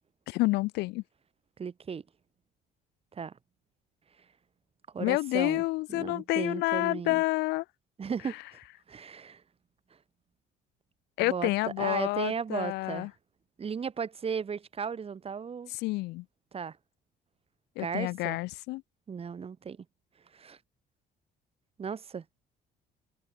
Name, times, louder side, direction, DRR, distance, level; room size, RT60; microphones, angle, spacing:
voice 1, 0.3-1.0 5.0-7.6 11.2-13.1 15.7-16.2 17.8-18.8, left 21 dB, 90° left, 1.0 m, -29 dB
voice 2, 1.6-2.0 3.1-3.3 4.9-5.6 5.9-7.2 8.0-8.4 8.9-9.4 11.2-11.5 11.8-13.1 13.6-15.7 16.5-16.8 17.8-18.4 19.1-19.8 20.3-20.6 21.8-22.2, right 6 dB, 35° right, 4.5 m, -35 dB
cardioid pair, 110°, 17 cm